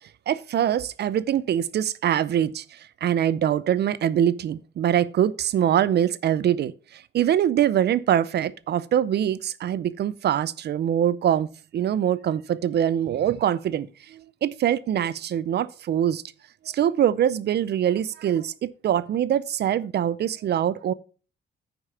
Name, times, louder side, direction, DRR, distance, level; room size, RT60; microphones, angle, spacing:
voice 1, 0.3-16.2 16.6-20.9, right 10 dB, 55° right, 0.5 m, -24 dB
9.6 x 5.1 x 5.5 m
cardioid pair, 90°, 20 cm